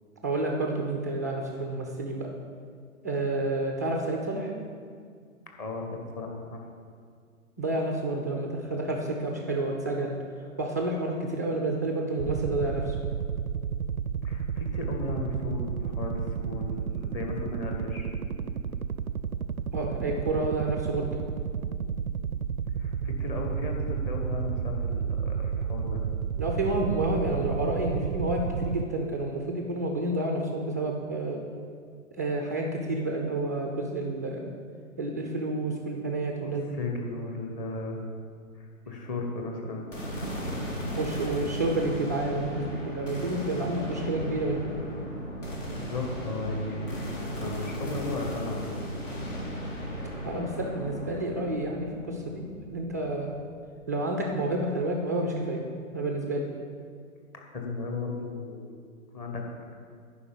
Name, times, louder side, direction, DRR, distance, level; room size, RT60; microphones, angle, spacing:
voice 1, 0.2-2.3 3.0-4.5 7.6-10.1 10.6-13.0 19.7-21.1 26.4-31.4 32.1-34.5 35.0-36.8 41.0-44.7 50.2-52.4 52.7-53.3 53.9-55.6 55.9-56.5, right 2 dB, 15° right, 1 dB, 0.4 m, -29 dB
voice 2, 6.2-6.6 14.2-18.1 22.8-26.0 36.4-38.0 38.5-39.9 45.7-48.8 57.3-59.4, left 3 dB, 20° left, 1 dB, 1.2 m, -36 dB
sound 1, 12.2-28.9, right 7 dB, 90° right, 0.5 m, -31 dB
sound 2, 39.9-54.2, equal, 60° left, 2.9 m, -36 dB
9.9 x 5.3 x 6.8 m, 2.1 s
figure-of-eight pair, 130°, 42 cm